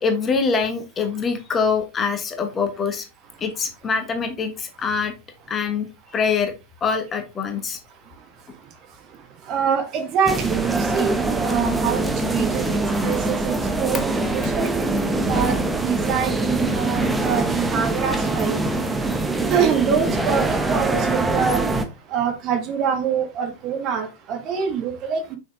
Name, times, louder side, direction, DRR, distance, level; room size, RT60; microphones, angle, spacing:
voice 1, 0.0-3.0 3.4-5.1 5.5-6.5 6.8-7.8 14.4-14.5, left 5 dB, 20° left, 1.5 m, -24 dB
voice 2, 9.5-13.5 13.8-14.7 15.3-18.6 19.5-21.6 22.1-25.4, right 7 dB, 35° right, 1.8 m, -25 dB
sound 1, 10.3-21.9, right 2 dB, 10° right, 1.1 m, -23 dB
6.4 x 6.1 x 3.6 m
figure-of-eight pair, 90°, 0 cm